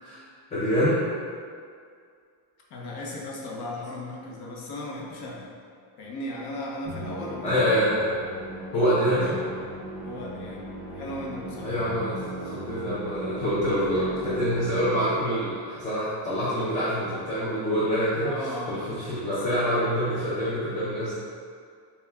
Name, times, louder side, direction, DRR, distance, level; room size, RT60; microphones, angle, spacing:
voice 1, 0.5-1.0 7.4-8.1 8.7-9.4 11.6-21.2, equal, 15° left, -9 dB, 0.3 m, -26 dB
voice 2, 2.7-5.5 6.0-7.8 9.0-9.5 10.0-11.7 18.2-18.9 19.2-19.6, left 1 dB, 55° left, -3 dB, 0.8 m, -37 dB
Musical instrument, 6.8-15.4, right 1 dB, 5° right, 0.9 m, -38 dB
6.6 x 2.3 x 2.3 m, 2.2 s
cardioid pair, 175°, 48 cm